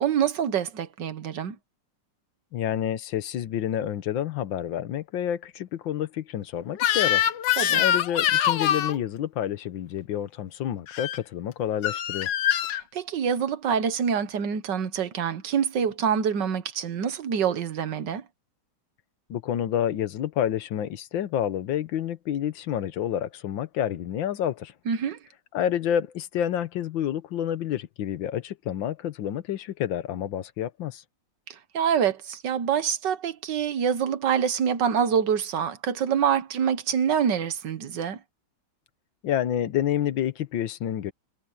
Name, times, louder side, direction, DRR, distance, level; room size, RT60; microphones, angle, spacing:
voice 1, 0.0-1.6 7.6-7.8 12.7-18.2 24.9-25.2 31.5-38.2, right 7 dB, 70° right, 1.8 m, -26 dB
voice 2, 2.5-7.3 7.7-12.3 19.3-24.7 25.5-31.0 39.2-41.1, left 10 dB, 90° left, 1.7 m, -29 dB
Crying sobbing / Screech, 6.8-9.0 10.9-11.2 11.8-12.8, left 11 dB, 75° left, 1.5 m, -24 dB
omnidirectional pair, 2.0 m